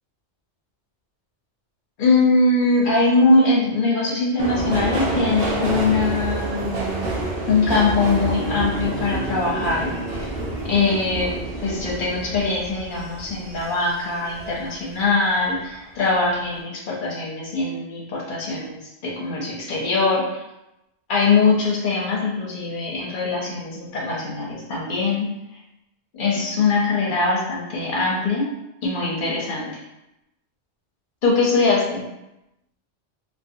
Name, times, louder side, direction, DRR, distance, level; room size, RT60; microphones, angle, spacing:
voice 1, 2.0-6.6 7.5-10.3 10.6-11.4 11.6-20.4 21.1-25.3 26.1-28.5 28.8-29.8 31.2-32.1, left 3 dB, 55° left, -3 dB, 0.7 m, -22 dB
Subway metro underground, 4.4-15.1 15.5-16.2 16.5-16.6, right 2 dB, 65° right, 0.7 m, -28 dB
2.5 x 2.4 x 2.6 m, 0.91 s
omnidirectional pair, 1.2 m